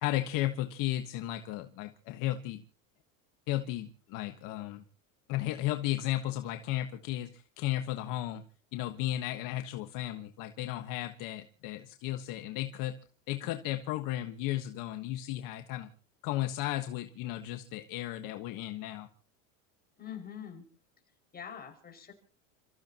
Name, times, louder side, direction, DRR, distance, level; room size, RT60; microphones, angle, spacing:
voice 1, 0.0-2.6 3.5-4.8 5.3-8.4 8.7-13.0 13.3-15.9 16.2-19.1, left 14 dB, 55° left, 1.4 m, -34 dB
voice 2, 20.0-20.7 21.3-22.1, left 8 dB, 25° left, 5.6 m, -44 dB
30.0 x 15.0 x 2.9 m
supercardioid pair, 135°, 39 cm